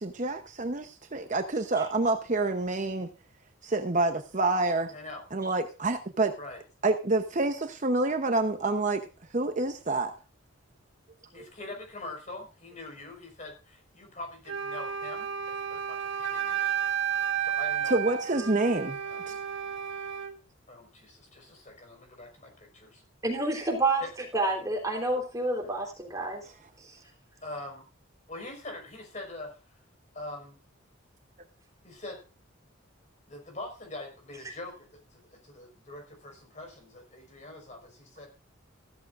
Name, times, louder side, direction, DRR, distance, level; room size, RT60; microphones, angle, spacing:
voice 1, 0.0-3.1 3.6-4.9 5.3-6.3 6.8-9.1 9.3-10.2 11.4-11.5 17.9-19.0 19.3-19.4, right 2 dB, 35° right, 7 dB, 0.8 m, -27 dB
voice 2, 4.9-5.2 6.4-6.6 11.3-16.7 17.4-18.4 19.0-19.4 20.7-23.0 24.0-24.1 25.6-25.7 27.4-27.9 28.3-29.6 30.1-30.6 31.8-32.2 33.3-38.3, left 2 dB, 35° left, 3 dB, 4.9 m, -43 dB
Wind instrument woodwind instrument, 14.5-20.4, right 8 dB, 60° right, 1.7 m, -32 dB
voice 3, 23.2-24.0 24.3-26.4 26.8-27.0, right 2 dB, 15° right, 1 dB, 3.6 m, -28 dB
15.5 x 13.0 x 2.5 m, 0.31 s
head